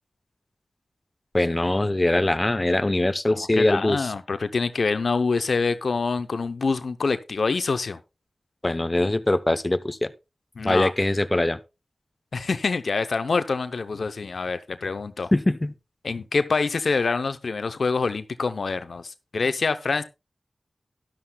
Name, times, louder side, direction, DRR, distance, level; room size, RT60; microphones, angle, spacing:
voice 1, 1.3-4.1 8.6-10.1 10.6-11.6 15.3-15.7, left 1 dB, 30° left, 0.8 m, -22 dB
voice 2, 3.3-8.0 10.6-10.9 12.3-15.3 16.0-20.0, left 4 dB, 80° left, 0.7 m, -26 dB
12.5 x 11.5 x 2.3 m
cardioid pair, 45°, 0 cm